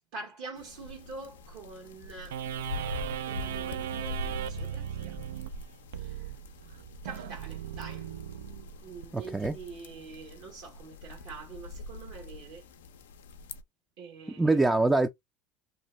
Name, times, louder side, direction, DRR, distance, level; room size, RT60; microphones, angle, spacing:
voice 1, 0.1-2.4 3.3-5.1 5.9-6.3 7.0-8.1 8.8-12.6 14.0-14.6, right 4 dB, 70° right, 1.1 m, -45 dB
sound 1, 0.6-13.6, left 3 dB, 90° left, 0.4 m, -43 dB
sound 2, 2.3-9.1, right 10 dB, 85° right, 0.3 m, -37 dB
voice 2, 9.1-9.6 14.3-15.1, right 2 dB, 10° right, 0.4 m, -24 dB
2.7 x 2.1 x 3.0 m
hypercardioid pair, 95°, 0 cm